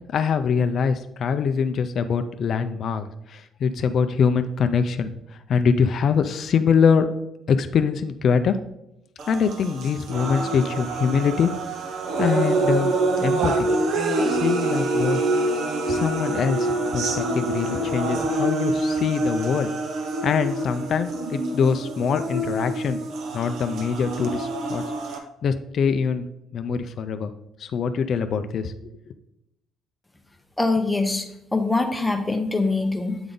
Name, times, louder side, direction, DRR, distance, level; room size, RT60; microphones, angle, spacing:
voice 1, 0.1-7.1 7.5-8.6 9.3-11.5 12.2-12.9 13.2-13.7 14.3-15.2 15.9-19.7 20.2-23.0 23.3-24.9 25.4-26.3 26.5-27.3 27.6-28.9, left 6 dB, 50° left, 9 dB, 0.3 m, -23 dB
sound 1, 9.2-25.2, right 2 dB, 65° right, 0.7 m, -26 dB
voice 2, 30.6-33.2, left 3 dB, 5° left, 5 dB, 0.7 m, -23 dB
7.8 x 3.8 x 3.6 m, 0.86 s
cardioid pair, 130°, 0 cm